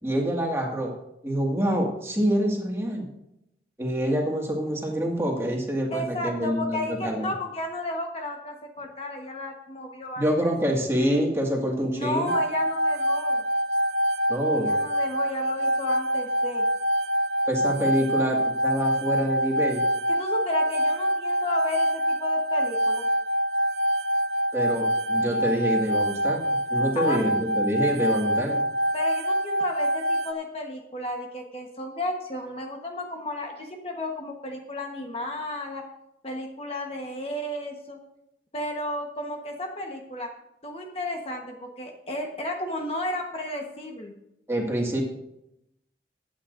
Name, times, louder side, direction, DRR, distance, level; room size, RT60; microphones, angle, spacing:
voice 1, 0.0-0.9 1.2-3.1 3.8-7.3 10.2-12.3 14.3-14.7 17.5-19.8 24.5-28.6 44.5-45.0, equal, 15° right, -1 dB, 1.9 m, -26 dB
voice 2, 5.9-10.5 11.9-13.4 14.5-16.7 20.1-23.1 26.9-27.2 28.9-35.8 36.2-38.0 38.5-40.3 40.6-44.1, left 1 dB, 35° left, 2 dB, 1.2 m, -33 dB
sound 1, 12.3-30.3, equal, 65° right, 0.6 m, -25 dB
20.0 x 8.5 x 2.6 m, 0.83 s
head